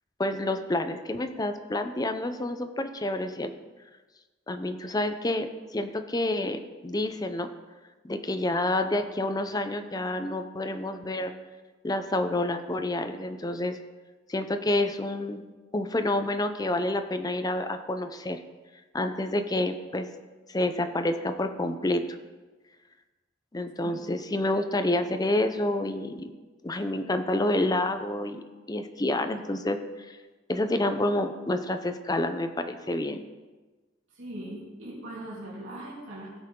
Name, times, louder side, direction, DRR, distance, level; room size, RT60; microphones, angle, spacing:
voice 1, 0.2-3.5 4.5-7.5 8.0-11.3 11.8-13.8 14.3-15.4 15.7-18.4 18.9-20.1 20.5-22.0 23.5-26.3 26.6-28.4 28.7-29.8 30.1-30.2 30.5-33.2, left 1 dB, 20° left, 8 dB, 0.6 m, -28 dB
voice 2, 34.1-36.4, right 1 dB, 90° right, -7 dB, 3.0 m, -40 dB
16.0 x 6.8 x 3.7 m, 1.3 s
head